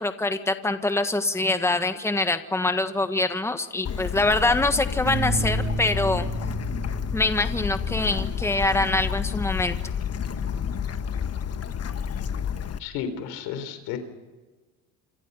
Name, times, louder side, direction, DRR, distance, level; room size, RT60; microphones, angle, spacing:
voice 1, 0.0-6.2 7.1-9.8, left 2 dB, 5° left, 8 dB, 1.6 m, -24 dB
Bird / Stream, 3.8-12.8, left 8 dB, 45° left, 1.4 m, -30 dB
Bass guitar, 5.1-9.5 9.9-11.3, right 4 dB, 50° right, 2.5 m, -35 dB
voice 2, 12.8-14.0, left 8 dB, 90° left, 10 dB, 3.9 m, -32 dB
27.5 x 27.0 x 5.6 m, 1.3 s
supercardioid pair, 90°, 36 cm